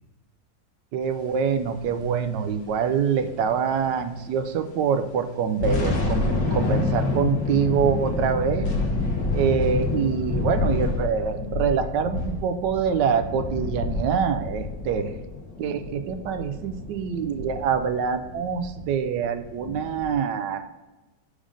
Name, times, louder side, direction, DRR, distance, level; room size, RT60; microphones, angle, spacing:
voice 1, 0.9-6.2 6.5-8.7 9.3-15.1 15.6-20.7, right 7 dB, 80° right, 8 dB, 1.2 m, -25 dB
sound 1, 1.6-4.4 4.7-4.8 5.3-20.1, left 3 dB, 80° left, 1.8 m, -28 dB
5.2 x 5.1 x 5.0 m, 1.1 s
omnidirectional pair, 1.9 m